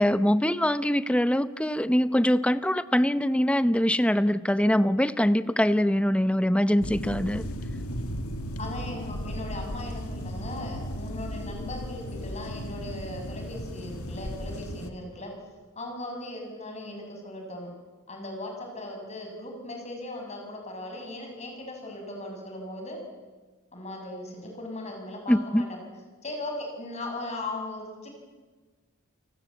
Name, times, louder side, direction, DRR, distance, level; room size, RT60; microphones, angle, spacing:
voice 1, 0.0-7.4 25.3-25.7, equal, 5° left, 14 dB, 0.7 m, -23 dB
sound 1, 6.8-14.9, equal, 90° left, 2.1 m, -35 dB
voice 2, 8.6-15.3 15.7-17.7 18.1-23.0 23.7-25.9 26.2-28.1, left 2 dB, 30° left, 2 dB, 6.7 m, -38 dB
29.0 x 18.5 x 8.4 m, 1.3 s
head